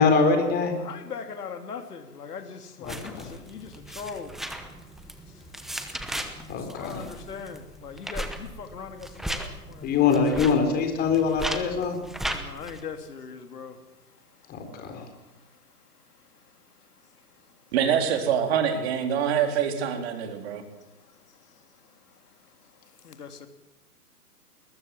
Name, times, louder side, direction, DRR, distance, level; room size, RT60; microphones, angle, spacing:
voice 1, 0.0-0.8 2.8-3.3 6.5-7.1 9.8-12.0 14.5-15.1, left 5 dB, 20° left, 5 dB, 4.0 m, -24 dB
voice 2, 0.8-9.9 12.3-13.8 14.9-15.6 17.1-17.5 20.5-23.5, left 6 dB, 75° left, 7 dB, 3.1 m, -42 dB
sound 1, 2.8-12.8, right 1 dB, ahead, 0.9 m, -37 dB
voice 3, 17.7-20.6, right 8 dB, 40° right, 5 dB, 3.9 m, -25 dB
21.0 x 19.5 x 7.7 m, 0.98 s
hypercardioid pair, 145°, 47 cm